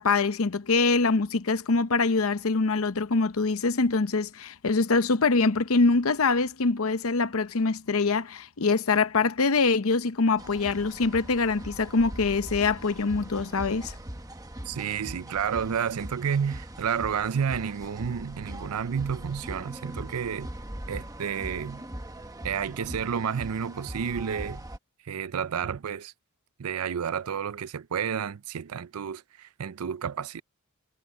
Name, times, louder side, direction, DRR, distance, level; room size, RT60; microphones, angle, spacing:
voice 1, 0.0-13.9, left 4 dB, 70° left, 0.8 m, -24 dB
sound 1, 10.4-24.8, right 1 dB, 15° right, 1.2 m, -41 dB
voice 2, 14.7-20.5 20.9-21.8 22.4-24.6 25.1-26.1 26.6-30.4, right 7 dB, 85° right, 0.5 m, -30 dB
head